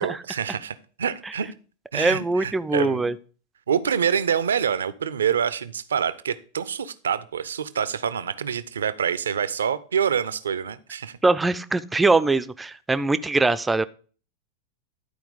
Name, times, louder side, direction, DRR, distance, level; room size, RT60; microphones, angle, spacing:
voice 1, 0.0-1.5 1.9-3.0 3.7-11.2, right 7 dB, 65° right, 16 dB, 0.6 m, -26 dB
voice 2, 1.9-3.1 11.2-13.8, right 3 dB, 10° right, 14 dB, 0.5 m, -22 dB
11.5 x 4.6 x 5.3 m, 0.40 s
figure-of-eight pair, 90°, 0 cm